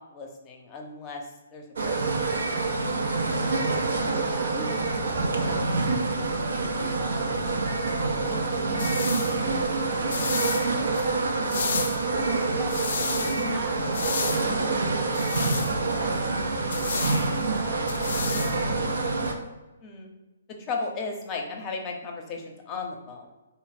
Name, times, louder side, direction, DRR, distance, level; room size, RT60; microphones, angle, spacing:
voice 1, 0.1-1.2 1.5-2.0 2.6-2.7 19.8-20.1 20.7-23.3, left 4 dB, 25° left, 2 dB, 0.7 m, -35 dB
sound 1, 1.8-19.3, right 3 dB, 70° right, 0.5 m, -26 dB
voice 2, 4.2-7.4 8.1-9.9 12.1-17.6 18.0-18.9, right 1 dB, 10° right, -1 dB, 0.7 m, -41 dB
sound 2, 8.4-19.3, left 5 dB, 60° left, 0.3 m, -34 dB
3.9 x 2.0 x 4.0 m, 1.1 s
figure-of-eight pair, 130°, 0 cm